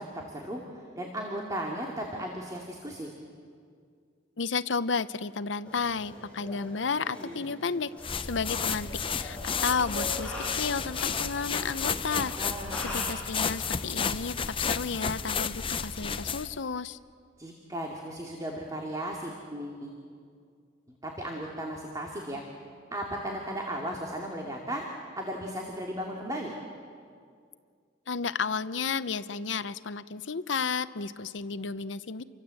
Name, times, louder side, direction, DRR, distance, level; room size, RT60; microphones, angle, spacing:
voice 1, 0.0-3.1 12.4-13.0 17.4-19.9 21.0-22.4 22.9-26.5, right 1 dB, 20° right, 0 dB, 2.4 m, -36 dB
voice 2, 4.4-7.9 8.2-12.3 12.8-17.0 28.1-32.2, left 5 dB, 80° left, 14 dB, 0.8 m, -32 dB
sound 1, 5.6-13.1, left 1 dB, 5° left, 6.5 m, -42 dB
sound 2, 8.0-16.6, left 6 dB, 30° left, 0.7 m, -32 dB
29.0 x 24.5 x 7.8 m, 2.2 s
head